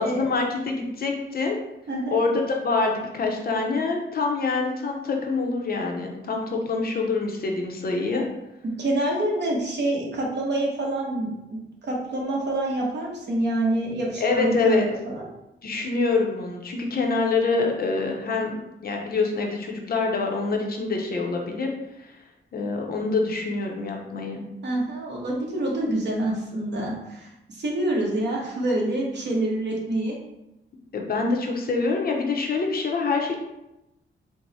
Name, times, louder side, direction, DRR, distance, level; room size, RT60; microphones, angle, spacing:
voice 1, 0.0-1.6 2.1-8.3 14.2-14.9 15.6-21.7 22.0-22.1 22.5-24.4 30.9-33.4, left 3 dB, 45° left, 1 dB, 0.6 m, -25 dB
voice 2, 1.9-2.2 8.8-14.8 15.0-15.3 24.6-30.2, right 1 dB, 60° right, -2 dB, 1.0 m, -27 dB
4.6 x 2.0 x 4.0 m, 0.90 s
wide cardioid pair, 170°, 21 cm